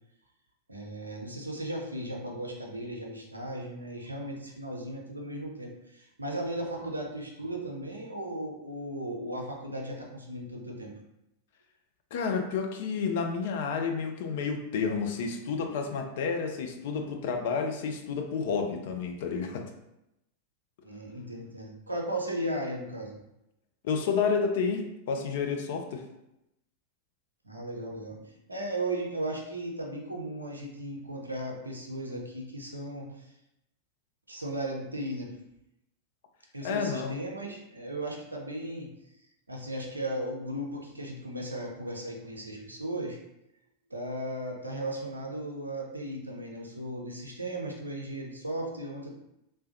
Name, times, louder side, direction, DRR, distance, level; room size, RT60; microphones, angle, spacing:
voice 1, 0.7-10.9 20.8-23.2 27.4-33.3 34.3-35.3 36.5-38.9 39.5-43.2 43.9-49.1, right 1 dB, 80° right, 0 dB, 0.5 m, -36 dB
voice 2, 12.1-19.6 23.8-26.0 36.6-37.2, left 5 dB, 55° left, 4 dB, 0.4 m, -30 dB
3.3 x 2.2 x 2.6 m, 0.86 s
figure-of-eight pair, 90°, 0 cm